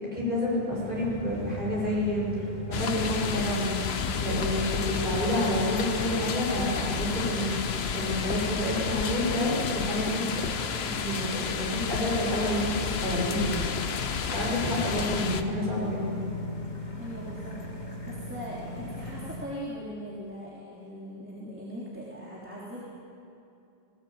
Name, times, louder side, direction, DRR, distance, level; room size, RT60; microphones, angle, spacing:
voice 1, 0.0-2.3 2.7-3.8 4.2-7.6 7.9-13.6 14.3-16.3, left 1 dB, 55° right, -5 dB, 7.4 m, -29 dB
sound 1, 0.7-19.5, left 3 dB, 45° left, 2.2 m, -39 dB
sound 2, 2.7-15.4, left 6 dB, 80° left, 1.1 m, -31 dB
voice 2, 17.0-17.6 18.0-22.8, equal, 10° right, -8 dB, 3.5 m, -40 dB
19.5 x 18.5 x 8.9 m, 2.5 s
omnidirectional pair, 1.0 m